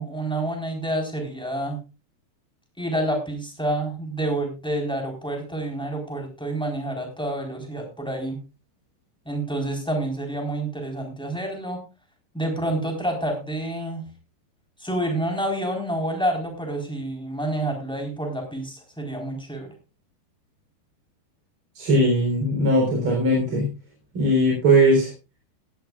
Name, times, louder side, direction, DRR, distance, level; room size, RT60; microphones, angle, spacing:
voice 1, 0.0-1.8 2.8-8.4 9.3-11.8 12.3-14.0 14.8-19.7, right 1 dB, ahead, 1 dB, 3.5 m, -28 dB
voice 2, 21.7-23.7 24.1-25.1, right 1 dB, 35° right, -2 dB, 4.5 m, -19 dB
18.0 x 13.0 x 2.4 m, 0.30 s
omnidirectional pair, 4.6 m